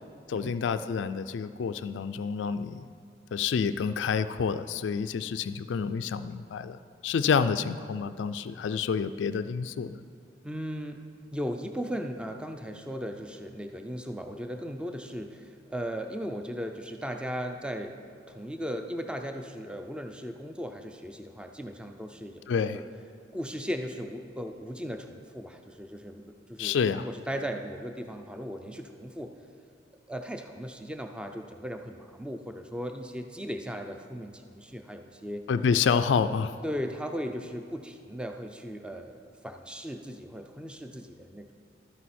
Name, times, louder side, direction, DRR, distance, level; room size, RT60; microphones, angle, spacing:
voice 1, 0.3-2.9 3.3-10.0 22.5-22.8 26.6-27.1 35.5-36.5, left 6 dB, 85° left, 11 dB, 0.3 m, -28 dB
voice 2, 10.4-11.0 11.3-18.0 18.3-22.5 22.7-22.8 23.3-26.2 26.5-29.3 30.1-35.4 36.6-41.5, equal, 5° right, 5 dB, 0.4 m, -37 dB
12.5 x 9.2 x 4.3 m, 2.2 s
head